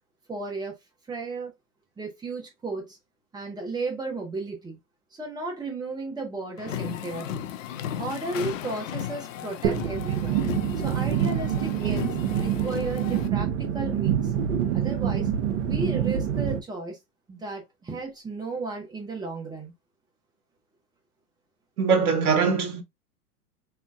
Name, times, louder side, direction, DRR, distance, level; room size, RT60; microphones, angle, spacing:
voice 1, 0.3-0.7 1.1-1.5 2.0-3.0 3.3-4.8 5.1-7.5 8.0-10.4 10.8-14.3 14.7-15.3 15.7-17.0 17.3-19.7, right 3 dB, 10° right, 1.2 m, -34 dB
sound 1, 6.6-13.3, left 10 dB, 55° left, 0.6 m, -35 dB
sound 2, 9.6-16.6, right 9 dB, 50° right, 1.0 m, -26 dB
voice 2, 21.8-22.8, right 5 dB, 70° right, 1.2 m, -22 dB
3.6 x 3.4 x 2.4 m
hypercardioid pair, 110°, 46 cm